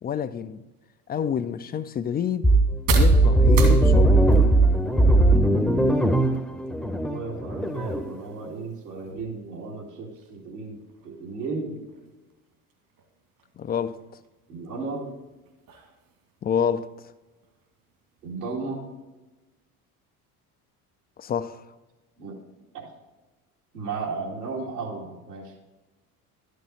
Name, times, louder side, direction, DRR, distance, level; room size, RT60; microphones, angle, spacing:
voice 1, 0.0-0.6 1.1-2.5 3.0-4.3 13.6-14.0 16.4-16.9 21.2-21.6, left 8 dB, 20° left, 0.4 m, -28 dB
sound 1, 0.7-18.3, right 5 dB, 65° right, 2.5 m, -41 dB
sound 2, 2.4-8.1, right 2 dB, ahead, 0.8 m, -19 dB
voice 2, 7.1-11.8 14.5-15.1 18.2-18.8 22.2-22.4 22.7-22.9 23.7-25.5, right 4 dB, 80° right, 2.4 m, -34 dB
12.0 x 6.5 x 3.9 m
figure-of-eight pair, 65°, 46 cm